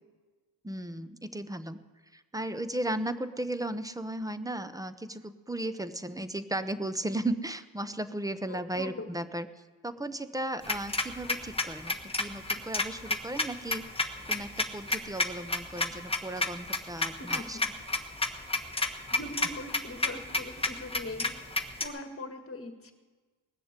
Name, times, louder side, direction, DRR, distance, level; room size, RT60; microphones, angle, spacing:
voice 1, 0.6-1.8 2.1-9.5 9.8-13.8 14.3-17.6, right 1 dB, 5° right, 12 dB, 0.7 m, -35 dB
voice 2, 8.5-9.1 17.2-17.6 19.1-22.9, left 2 dB, 25° left, 5 dB, 1.8 m, -41 dB
sound 1, 10.6-21.9, left 2 dB, 10° left, 1.2 m, -30 dB
19.5 x 6.9 x 8.2 m, 1.4 s
cardioid pair, 95°, 49 cm